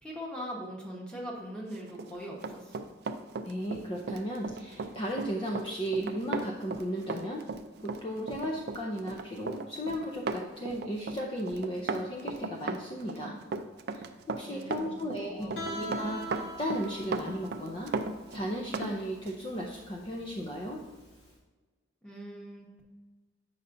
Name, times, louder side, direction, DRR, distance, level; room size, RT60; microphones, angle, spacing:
voice 1, 0.0-2.9 14.4-15.6 22.0-22.8, equal, 5° left, -3 dB, 1.1 m, -41 dB
Run, 1.9-18.9 19.3-19.4, right 4 dB, 55° right, 0.3 m, -36 dB
voice 2, 3.4-7.5 7.8-13.4 13.9-17.9 18.3-20.8, equal, 25° left, -1 dB, 0.5 m, -35 dB
Guitar, 15.6-21.3, equal, 65° left, 1.4 m, -42 dB
8.1 x 5.5 x 2.6 m, 1.3 s
head